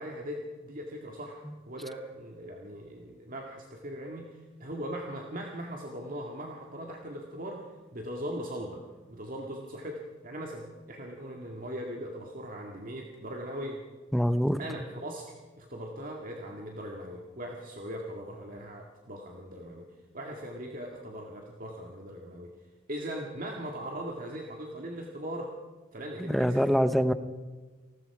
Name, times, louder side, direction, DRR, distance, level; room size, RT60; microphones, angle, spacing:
voice 1, 0.0-7.7 7.9-8.8 9.1-13.8 14.6-19.9 20.1-22.5 22.9-25.5 25.9-26.8, equal, 45° right, 0 dB, 2.1 m, -39 dB
voice 2, 14.1-14.6 26.2-27.1, equal, ahead, 12 dB, 0.7 m, -24 dB
29.5 x 19.5 x 4.9 m, 1.3 s
head